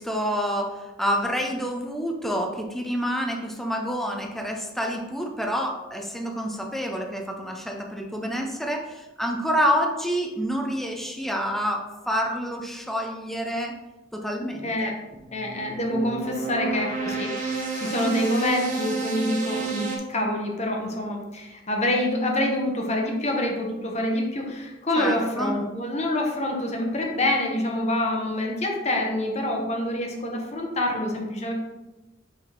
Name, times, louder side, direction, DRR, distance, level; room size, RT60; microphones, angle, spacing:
voice 1, 0.0-13.7 14.1-15.0 17.8-18.1 25.0-25.6, equal, ahead, 2 dB, 0.6 m, -28 dB
voice 2, 14.6-14.9 15.3-31.5, left 1 dB, 35° left, 1 dB, 1.1 m, -26 dB
sound 1, 15.1-20.0, right 4 dB, 45° right, 1.2 m, -30 dB
5.8 x 3.6 x 4.5 m, 1.1 s
head